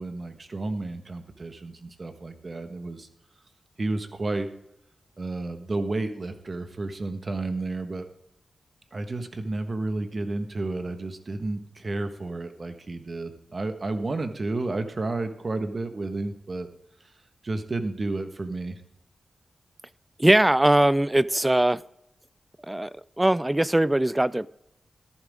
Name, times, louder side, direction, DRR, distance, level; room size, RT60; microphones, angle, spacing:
voice 1, 0.0-3.1 3.8-4.5 5.2-8.1 8.9-16.7 17.4-18.8, right 2 dB, 45° right, 7 dB, 1.4 m, -31 dB
voice 2, 20.2-21.8 22.7-22.9 23.2-24.5, right 1 dB, 15° right, 20 dB, 0.4 m, -20 dB
13.5 x 12.0 x 3.7 m, 0.81 s
cardioid pair, 75°, 0 cm